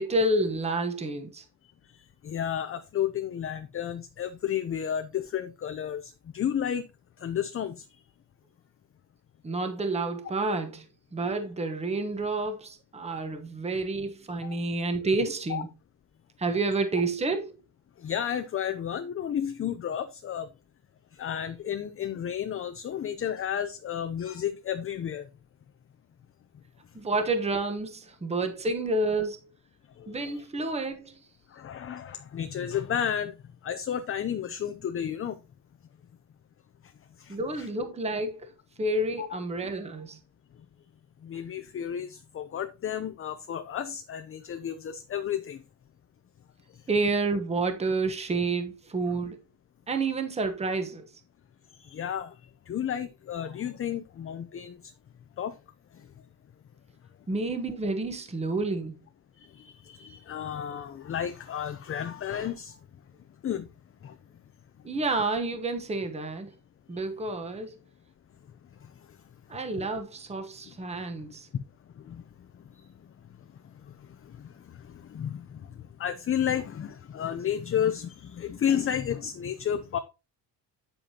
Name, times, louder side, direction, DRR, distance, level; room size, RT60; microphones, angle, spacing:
voice 1, 0.0-1.4 9.4-10.8 11.1-15.7 16.4-17.5 26.9-29.5 30.1-31.2 37.3-38.5 38.8-40.2 46.9-49.4 49.9-51.1 57.3-58.9 64.8-66.5 66.9-67.7 69.5-71.5, right 2 dB, 15° right, 1.0 m, -29 dB
voice 2, 2.2-6.9 7.2-7.8 14.4-14.6 15.5-15.6 18.0-20.5 21.1-25.3 30.0-30.4 31.5-33.3 33.6-35.4 37.2-37.7 39.2-39.3 41.2-45.6 49.0-49.1 51.8-52.3 52.7-54.8 55.4-55.6 55.9-56.0 59.4-62.8 63.4-63.7 64.0-64.1 68.8-68.9 72.0-72.2 72.7-72.9 73.9-80.0, left 9 dB, 30° left, 0.6 m, -32 dB
8.5 x 7.7 x 2.8 m
cardioid pair, 135°, 42 cm